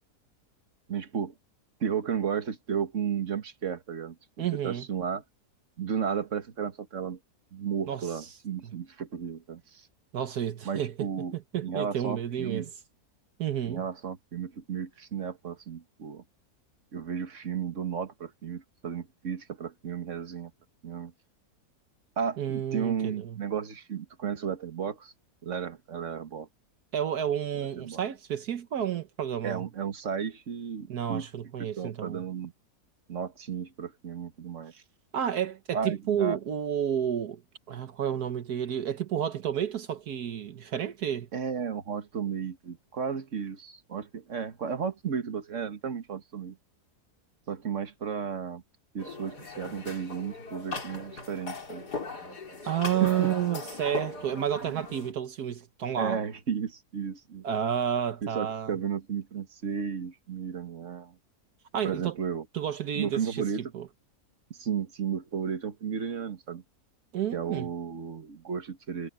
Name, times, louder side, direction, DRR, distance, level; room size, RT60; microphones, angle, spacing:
voice 1, 0.9-1.3 1.8-5.2 5.8-7.2 7.5-9.8 10.7-11.3 11.6-12.7 13.7-16.2 16.9-20.5 20.8-21.1 22.2-25.1 25.4-26.5 27.5-28.0 29.4-31.3 31.6-32.5 33.1-34.8 35.7-36.4 41.3-46.6 47.5-48.6 48.9-51.8 53.0-53.3 54.6-54.9 56.0-57.4 58.2-61.2 61.8-62.5 63.0-63.6 64.5-66.6 67.3-69.1, right 7 dB, 50° right, 1.8 m, -33 dB
voice 2, 4.4-4.8 7.8-8.4 8.6-8.7 10.1-12.7 13.4-13.8 22.4-23.4 26.9-29.7 30.9-32.2 35.1-37.4 37.7-41.3 52.7-56.2 57.4-58.7 61.7-62.1 62.5-63.9 67.1-67.7, right 9 dB, 75° right, 1.5 m, -31 dB
sound 1, 49.0-55.1, left 3 dB, 85° left, 4.2 m, -39 dB
omnidirectional pair, 1.7 m